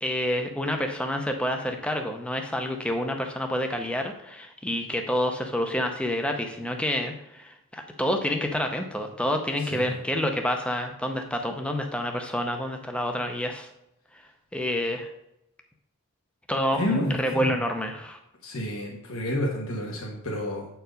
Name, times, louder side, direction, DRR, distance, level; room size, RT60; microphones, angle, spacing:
voice 1, 0.0-13.7 14.5-15.1 16.5-18.2, left 1 dB, 5° left, 4 dB, 0.6 m, -28 dB
voice 2, 16.7-17.5 18.4-20.7, left 1 dB, 75° left, -1 dB, 1.3 m, -30 dB
7.8 x 4.7 x 5.1 m, 0.85 s
head